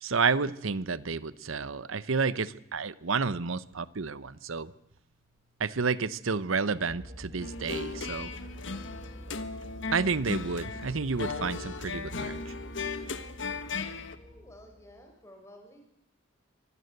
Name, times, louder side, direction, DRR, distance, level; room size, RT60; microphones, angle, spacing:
voice 1, 0.0-4.7 5.6-8.3 9.9-12.5, right 5 dB, 75° right, 17 dB, 0.9 m, -30 dB
sound 1, 6.8-15.0, equal, 35° right, 7.2 m, -45 dB
sound 2, 7.4-14.2, left 4 dB, 65° left, 1.5 m, -37 dB
voice 2, 14.1-15.8, left 1 dB, 15° left, 3 dB, 5.0 m, -52 dB
24.5 x 18.0 x 8.0 m, 0.81 s
head